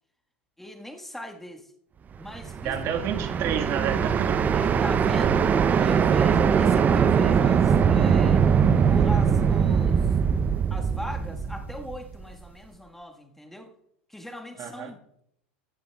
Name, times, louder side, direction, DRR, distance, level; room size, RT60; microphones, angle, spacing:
voice 1, 0.6-1.7 2.2-2.7 4.5-5.4 5.7-8.5 8.9-10.1 10.7-13.7 14.1-15.2, equal, 5° left, 3 dB, 1.6 m, -39 dB
sound 1, 2.3-12.3, right 7 dB, 30° right, 0.7 m, -22 dB
voice 2, 2.6-4.4 14.6-14.9, right 8 dB, 45° right, 4 dB, 1.7 m, -30 dB
16.0 x 10.0 x 2.3 m, 0.73 s
hypercardioid pair, 90°, 6 cm